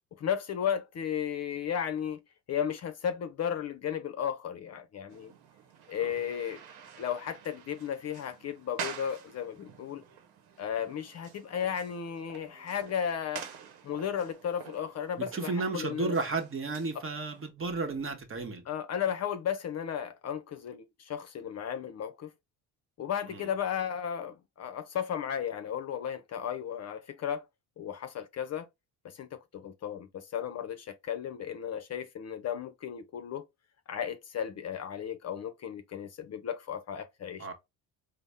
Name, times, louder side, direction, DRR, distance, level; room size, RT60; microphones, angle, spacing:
voice 1, 0.2-2.2 2.5-5.3 5.9-6.6 7.0-10.0 10.6-13.5 13.8-16.2 18.7-22.3 23.0-27.4 27.8-28.7 29.0-33.5 33.9-37.5, left 8 dB, 40° left, 0.5 m, -34 dB
sound 1, 5.1-17.5, right 8 dB, 70° right, 0.9 m, -47 dB
voice 2, 15.2-18.6 23.3-23.5 37.4-37.5, right 3 dB, 35° right, 1.0 m, -33 dB
4.0 x 2.0 x 3.4 m
supercardioid pair, 65°, 39 cm